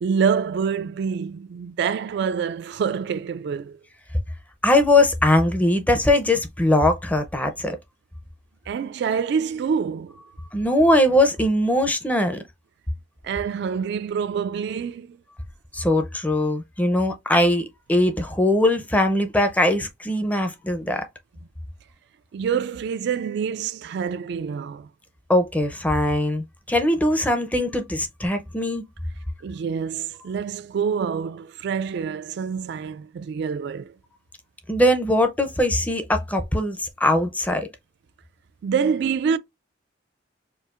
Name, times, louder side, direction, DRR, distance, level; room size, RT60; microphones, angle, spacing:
voice 1, 0.0-3.8 8.7-10.2 13.2-15.2 22.3-24.9 29.4-34.0 38.6-39.4, right 6 dB, 60° right, 0.3 m, -26 dB
voice 2, 4.6-7.8 10.5-12.4 15.7-21.1 25.3-28.8 34.7-37.7, left 1 dB, 10° left, 0.5 m, -21 dB
4.5 x 2.4 x 2.4 m
head